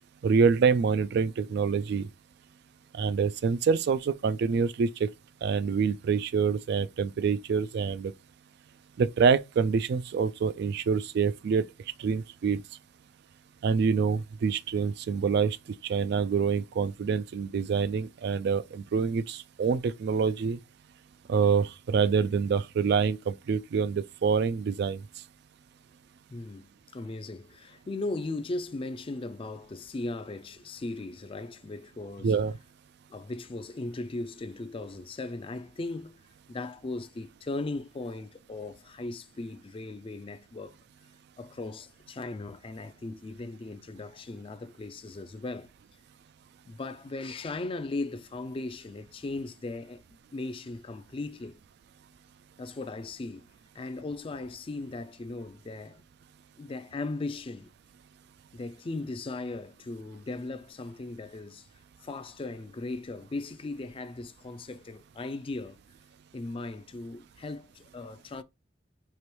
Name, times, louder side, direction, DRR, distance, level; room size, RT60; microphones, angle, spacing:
voice 1, 0.2-2.1 2.9-5.1 5.4-8.1 9.0-11.6 12.0-12.6 13.6-15.6 15.8-20.6 21.3-25.0 32.2-32.5, right 5 dB, 60° right, 0.3 m, -26 dB
voice 2, 26.3-32.4 33.1-36.2 36.5-40.8 41.4-45.7 46.7-50.0 50.3-51.6 52.6-53.5 53.7-56.0 56.6-57.7 58.5-61.7 62.0-65.8 66.3-68.4, left 2 dB, 30° left, 0.4 m, -37 dB
4.8 x 3.0 x 2.9 m
head